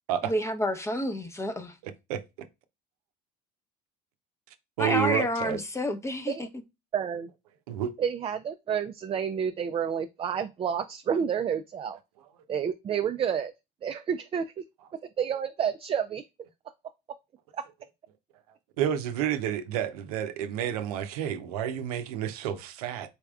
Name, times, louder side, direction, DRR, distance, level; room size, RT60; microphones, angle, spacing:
voice 1, 0.2-1.7 4.8-6.3, left 1 dB, 15° left, 0.7 m, -29 dB
voice 2, 1.8-2.2 4.8-5.6 7.7-7.9 18.8-23.2, right 10 dB, 90° right, 0.6 m, -30 dB
voice 3, 6.9-7.3 8.0-12.0 12.5-13.5 13.8-14.6 15.2-16.2 17.5-17.6, right 8 dB, 30° right, 0.4 m, -29 dB
4.3 x 3.4 x 2.3 m
supercardioid pair, 85°, 19 cm